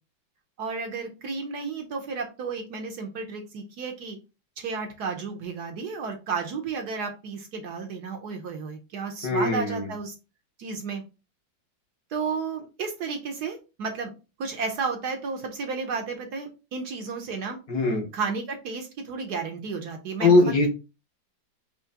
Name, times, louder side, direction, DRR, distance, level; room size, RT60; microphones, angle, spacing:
voice 1, 0.6-4.2 4.6-10.1 10.6-11.0 12.1-14.1 14.4-17.6 18.1-20.4, right 5 dB, 65° right, 3 dB, 1.2 m, -32 dB
voice 2, 9.2-9.9 17.7-18.0 20.2-20.7, left 3 dB, 55° left, 1 dB, 1.6 m, -21 dB
5.7 x 2.9 x 2.8 m, 0.30 s
omnidirectional pair, 2.1 m